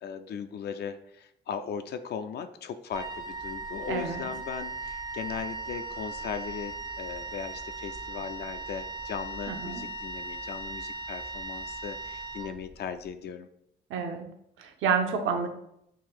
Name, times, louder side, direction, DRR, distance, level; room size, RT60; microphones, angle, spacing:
voice 1, 0.0-13.5, left 7 dB, 55° left, 9 dB, 0.4 m, -38 dB
Wind instrument woodwind instrument, 2.9-13.0, right 3 dB, 20° right, 0.5 m, -38 dB
voice 2, 3.9-4.2 9.5-9.8 13.9-14.3 14.6-15.5, right 6 dB, 80° right, 5 dB, 0.7 m, -29 dB
3.8 x 2.5 x 4.6 m, 0.76 s
cardioid pair, 90°, 20 cm